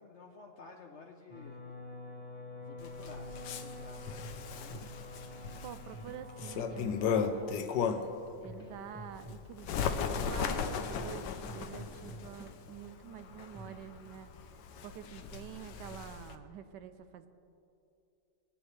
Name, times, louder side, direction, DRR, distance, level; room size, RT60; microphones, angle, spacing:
voice 1, 0.0-1.6 2.6-4.8, left 4 dB, 55° left, 1 dB, 0.8 m, -53 dB
sound 1, 1.3-7.4, left 2 dB, 15° right, 1.1 m, -47 dB
Bird, 2.8-8.2 8.7-16.4, left 6 dB, 75° left, 1.3 m, -36 dB
sound 2, 4.2-14.3, right 1 dB, 10° left, 1.8 m, -52 dB
voice 2, 5.6-17.3, right 9 dB, 80° right, 10 dB, 1.2 m, -48 dB
19.0 x 9.9 x 3.2 m, 2.7 s
omnidirectional pair, 1.9 m